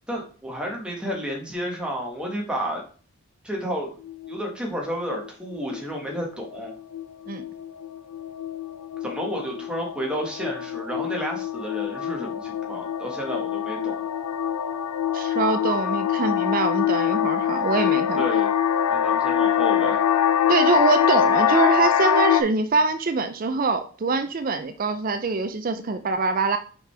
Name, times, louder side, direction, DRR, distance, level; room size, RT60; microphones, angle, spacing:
voice 1, 0.1-2.8 3.4-3.9 4.3-6.7 9.0-14.0 18.2-18.5 18.9-20.0, equal, 5° right, -1 dB, 1.3 m, -31 dB
sound 1, 4.0-4.5 5.1-5.3 5.5-5.8 6.1-22.4, left 9 dB, 85° left, 0.5 m, -24 dB
voice 2, 15.1-18.2 20.5-26.6, right 3 dB, 40° right, 9 dB, 0.4 m, -24 dB
6.0 x 5.1 x 3.3 m, 0.41 s
head